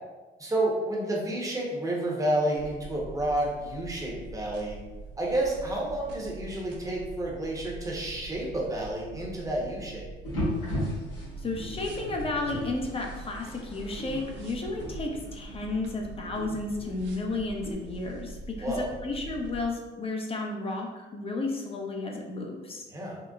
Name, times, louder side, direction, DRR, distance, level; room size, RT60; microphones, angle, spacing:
voice 1, 0.4-4.8 5.2-10.1 18.6-18.9 22.9-23.2, right 1 dB, 15° right, -2 dB, 0.8 m, -30 dB
sound 1, 2.5-19.7, right 3 dB, 75° right, 0.5 m, -44 dB
sound 2, 10.2-17.7, left 1 dB, 80° left, 1.4 m, -37 dB
voice 2, 11.4-22.8, left 2 dB, 30° left, 1 dB, 0.6 m, -33 dB
3.9 x 2.1 x 2.3 m, 1.2 s
cardioid pair, 90°, 19 cm